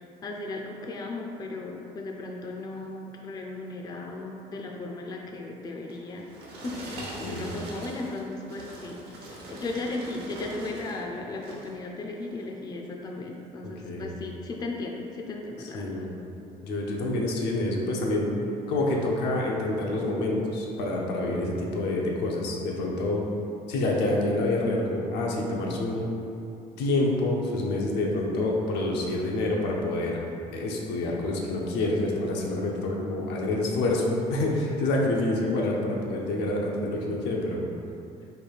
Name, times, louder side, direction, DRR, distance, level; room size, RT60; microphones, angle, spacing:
voice 1, 0.0-6.3 6.6-16.0, left 2 dB, 25° left, 1 dB, 0.3 m, -36 dB
sound 1, 5.9-11.0 11.3-11.8 12.3-12.5, right 1 dB, 75° right, 0.8 m, -42 dB
voice 2, 13.6-14.1 15.7-16.2 16.6-18.4 18.7-23.3 23.7-26.1 26.8-30.2 30.5-37.6, left 2 dB, 85° left, -2 dB, 0.6 m, -27 dB
3.3 x 2.3 x 4.4 m, 2.7 s
cardioid pair, 110°, 17 cm